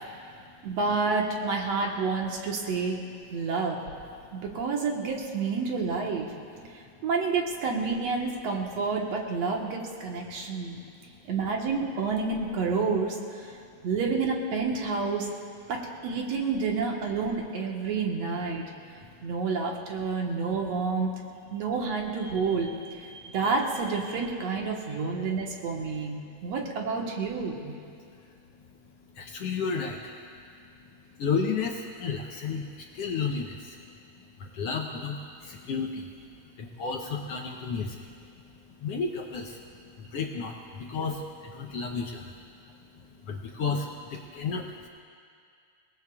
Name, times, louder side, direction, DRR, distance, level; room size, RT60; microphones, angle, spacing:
voice 1, 0.6-3.0 3.3-3.8 4.3-6.3 6.5-6.7 7.0-10.8 11.3-13.6 13.8-15.3 15.7-18.6 19.2-21.1 21.5-26.1 26.4-27.8, right 4 dB, 65° right, 0 dB, 2.4 m, -29 dB
voice 2, 29.2-30.2 31.2-33.8 34.4-36.1 36.6-38.1 38.8-39.6 40.0-42.4 43.2-44.9, left 5 dB, 70° left, 1 dB, 1.6 m, -32 dB
29.0 x 18.5 x 2.4 m, 2.3 s
omnidirectional pair, 3.4 m